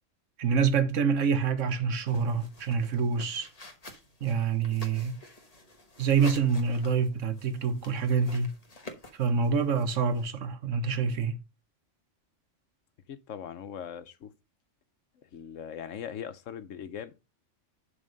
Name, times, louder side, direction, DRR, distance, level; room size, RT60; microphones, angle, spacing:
voice 1, 0.4-3.5 4.2-5.2 6.0-8.5 9.2-11.4, right 5 dB, 80° right, 1.3 m, -26 dB
sound 1, 2.1-10.3, left 2 dB, 30° left, 1.2 m, -49 dB
voice 2, 13.1-14.3 15.2-17.1, left 8 dB, 85° left, 1.2 m, -40 dB
11.0 x 3.6 x 5.3 m
omnidirectional pair, 1.3 m